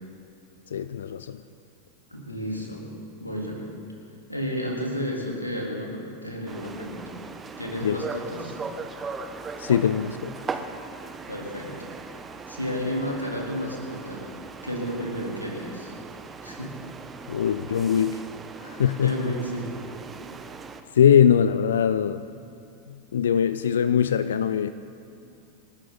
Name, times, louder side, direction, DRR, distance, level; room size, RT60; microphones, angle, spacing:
voice 1, 0.7-1.4 7.8-8.0 9.6-10.3 17.3-18.2 18.6-19.1 20.9-22.2 23.1-24.7, left 8 dB, 65° left, 12 dB, 0.5 m, -21 dB
voice 2, 2.1-2.9 3.2-3.7 4.3-7.1 7.6-8.6 11.3-11.9 12.5-14.3 14.6-15.9 16.4-16.8 19.0-19.7, equal, 85° left, -2 dB, 3.3 m, -32 dB
sound 1, 6.5-20.8, right 4 dB, 20° right, 1.0 m, -39 dB
27.5 x 12.5 x 4.0 m, 2.5 s
figure-of-eight pair, 90°, 0 cm